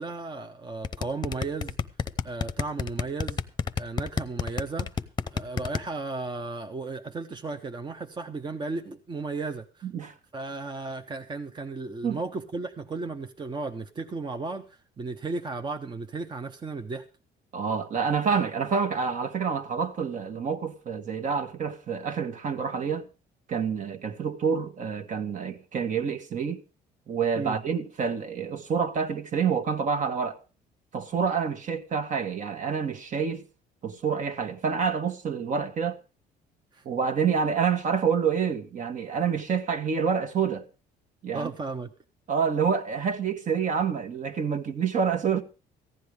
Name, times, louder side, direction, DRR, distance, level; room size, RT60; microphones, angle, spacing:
voice 1, 0.0-1.8 2.2-3.4 3.8-5.0 5.3-9.9 10.3-17.0 27.3-27.6 36.7-36.8 41.3-41.9, right 3 dB, 25° right, 0.9 m, -35 dB
sound 1, 0.8-5.8, left 6 dB, 25° left, 0.8 m, -28 dB
voice 2, 9.8-10.1 12.0-12.2 17.5-23.1 23.5-26.6 27.1-30.4 30.9-33.4 33.8-36.0 36.8-40.6 41.2-41.5 42.3-45.4, right 6 dB, 50° right, 1.5 m, -27 dB
15.0 x 10.0 x 5.0 m
cardioid pair, 110°, 17 cm